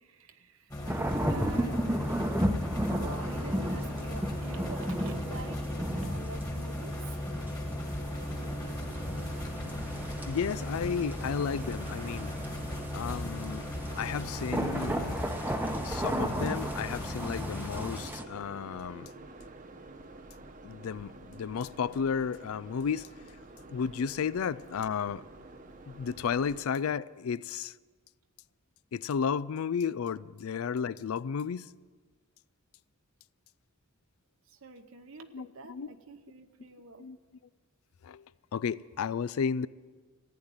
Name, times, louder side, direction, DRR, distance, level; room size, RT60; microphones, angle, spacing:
voice 1, 0.0-2.1 2.9-7.2 23.6-23.7 34.4-37.1, right 3 dB, 65° right, 0.9 m, -47 dB
sound 1, 0.7-18.0, left 1 dB, 15° left, 1.8 m, -36 dB
sound 2, 0.8-18.2, right 1 dB, 10° right, 0.8 m, -35 dB
sound 3, 8.0-26.6, right 2 dB, 40° right, 1.0 m, -49 dB
voice 2, 10.3-12.3 12.9-13.7 14.0-15.2 15.8-19.1 20.6-23.1 23.7-25.2 25.9-27.7 28.9-31.7 35.3-35.9 37.0-37.2 38.0-38.2 38.5-39.7, left 6 dB, 80° left, 0.4 m, -33 dB
15.0 x 9.6 x 9.0 m
head